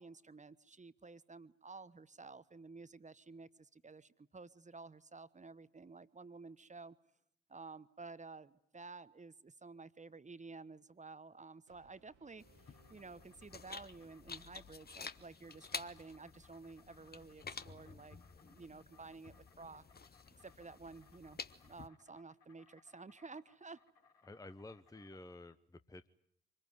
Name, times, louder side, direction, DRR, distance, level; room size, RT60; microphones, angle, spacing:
voice 1, 0.0-7.0 7.5-19.8 20.4-23.8, right 4 dB, 20° right, 15 dB, 1.2 m, -53 dB
Brass instrument, 11.7-14.8, right 7 dB, 85° right, 2.7 m, -70 dB
sound 1, 12.4-21.9, left 5 dB, 25° left, 1.1 m, -51 dB
Insect, 12.5-25.2, left 5 dB, 70° left, 4.4 m, -69 dB
voice 2, 24.2-26.1, left 2 dB, 10° left, 12 dB, 0.9 m, -52 dB
25.0 x 20.0 x 9.5 m, 0.76 s
hypercardioid pair, 45°, 36 cm